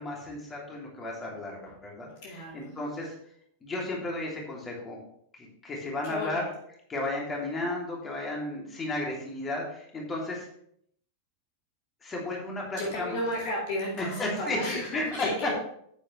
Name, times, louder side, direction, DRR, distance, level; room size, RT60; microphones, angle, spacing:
voice 1, 0.0-3.1 3.6-5.0 5.4-6.5 6.9-10.5 12.0-13.2 14.0-15.5, left 2 dB, 20° left, -2 dB, 2.9 m, -33 dB
voice 2, 2.1-2.7 6.0-6.5 12.8-15.5, left 1 dB, 45° left, -2 dB, 2.1 m, -33 dB
9.7 x 8.7 x 3.3 m, 0.68 s
figure-of-eight pair, 90°, 0 cm